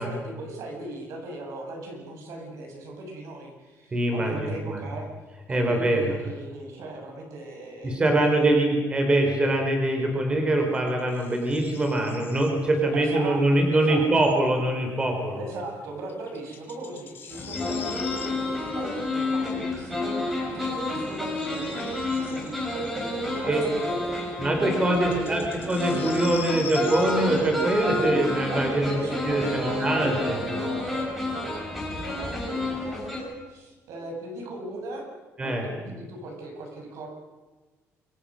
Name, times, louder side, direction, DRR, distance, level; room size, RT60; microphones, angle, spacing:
voice 1, 0.0-5.1 5.5-8.5 12.9-13.4 13.7-14.1 15.3-24.3 25.0-25.4 28.5-35.1 35.4-37.1, right 2 dB, 70° right, 2 dB, 8.0 m, -38 dB
voice 2, 3.9-4.8 5.5-6.2 7.8-15.4 23.5-23.6 24.4-29.0 29.3-30.4 35.4-35.6, right 1 dB, 20° right, 3 dB, 3.9 m, -23 dB
sound 1, 10.6-12.9 13.4-14.5 15.5-15.6 16.1-19.7 20.3-28.3, left 7 dB, 40° left, 5.7 m, -44 dB
sound 2, 17.3-33.2, left 2 dB, ahead, 6.3 m, -30 dB
28.0 x 23.5 x 6.5 m, 1.3 s
cardioid pair, 175°, 5 cm